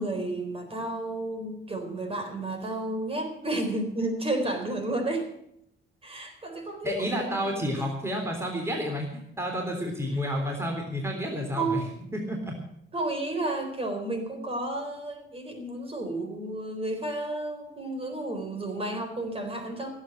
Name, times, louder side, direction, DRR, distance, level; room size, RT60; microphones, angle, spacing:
voice 1, 0.0-5.3 6.0-7.9 11.5-11.7 12.9-19.9, right 2 dB, 30° right, 5 dB, 4.0 m, -32 dB
voice 2, 6.8-11.8 12.1-12.5, equal, 15° right, 1 dB, 3.5 m, -30 dB
16.5 x 8.5 x 7.7 m, 0.75 s
cardioid pair, 90°, 20 cm